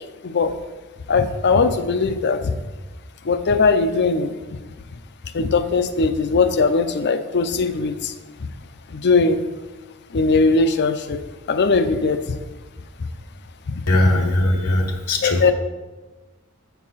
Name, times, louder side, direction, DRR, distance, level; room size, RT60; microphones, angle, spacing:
voice 1, 1.1-2.5 3.2-4.3 5.3-8.1 8.9-9.4 10.1-11.2 11.5-12.4 13.7-13.8 15.2-15.5, left 4 dB, 50° left, 10 dB, 0.5 m, -19 dB
voice 2, 13.9-15.4, left 1 dB, 80° left, 1 dB, 1.0 m, -19 dB
7.3 x 4.7 x 5.6 m, 1.2 s
head